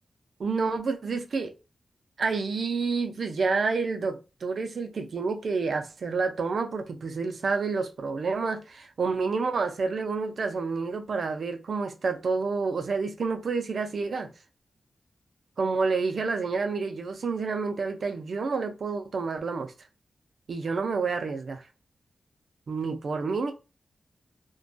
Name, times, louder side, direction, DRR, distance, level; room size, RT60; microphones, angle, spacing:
voice 1, 0.4-1.5 2.2-14.3 15.6-19.7 20.5-21.6 22.7-23.5, right 4 dB, 70° right, 0.4 m, -29 dB
2.2 x 2.2 x 2.5 m
cardioid pair, 75°, 0 cm